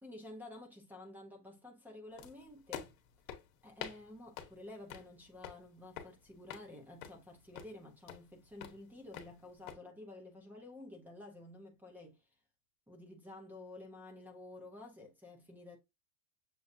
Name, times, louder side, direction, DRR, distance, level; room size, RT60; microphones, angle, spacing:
voice 1, 0.0-3.0 3.6-12.3 12.9-15.8, left 2 dB, 5° right, 0.7 m, -51 dB
sound 1, 2.2-9.8, left 9 dB, 60° left, 1.1 m, -50 dB
6.7 x 2.3 x 2.6 m
supercardioid pair, 155°, 43 cm